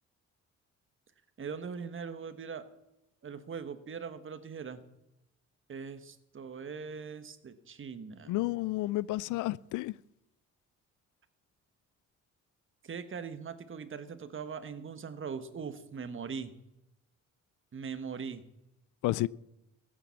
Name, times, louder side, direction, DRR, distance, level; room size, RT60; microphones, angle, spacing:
voice 1, 1.4-2.6 3.2-4.8 5.7-8.3 12.8-16.5 17.7-18.4, right 6 dB, 40° right, 1.4 m, -41 dB
voice 2, 8.3-9.9 19.0-19.3, left 17 dB, 85° left, 0.5 m, -31 dB
15.0 x 9.0 x 7.1 m
cardioid pair, 90°, 30 cm